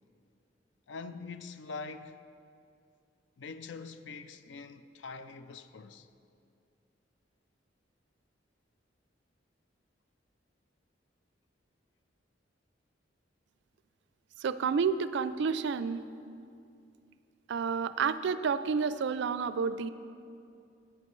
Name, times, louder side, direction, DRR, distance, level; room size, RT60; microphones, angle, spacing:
voice 1, 0.9-2.2 3.4-6.1, left 4 dB, 70° left, 0.4 m, -44 dB
voice 2, 14.4-16.0 17.5-19.9, right 5 dB, 65° right, 0.4 m, -30 dB
15.5 x 8.6 x 3.1 m
head